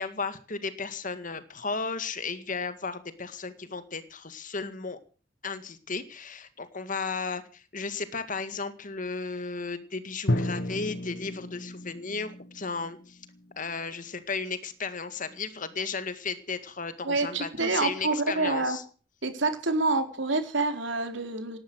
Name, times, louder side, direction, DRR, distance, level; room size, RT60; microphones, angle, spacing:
voice 1, 0.0-5.0 5.4-13.2 13.6-18.8, left 4 dB, 45° left, 11 dB, 1.9 m, -34 dB
Drum, 10.3-14.1, left 1 dB, 60° left, 1.3 m, -33 dB
voice 2, 17.0-18.8 19.2-21.6, right 3 dB, 70° right, 6 dB, 4.2 m, -27 dB
18.5 x 12.0 x 6.3 m, 0.40 s
head